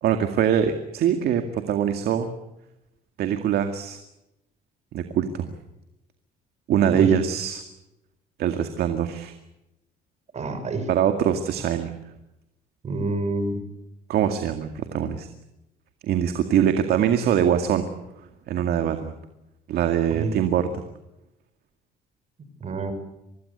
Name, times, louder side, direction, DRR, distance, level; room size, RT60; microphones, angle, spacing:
voice 1, 0.0-2.3 3.2-4.0 4.9-5.5 6.7-7.6 8.4-9.3 10.9-11.9 14.1-15.3 16.0-17.9 18.5-19.1 19.7-20.8, right 9 dB, 70° right, 7 dB, 2.2 m, -23 dB
voice 2, 10.3-10.9 12.8-13.6 20.1-20.4 22.6-22.9, right 3 dB, 40° right, 10 dB, 5.4 m, -27 dB
25.0 x 20.0 x 8.2 m, 0.90 s
cardioid pair, 110°, 17 cm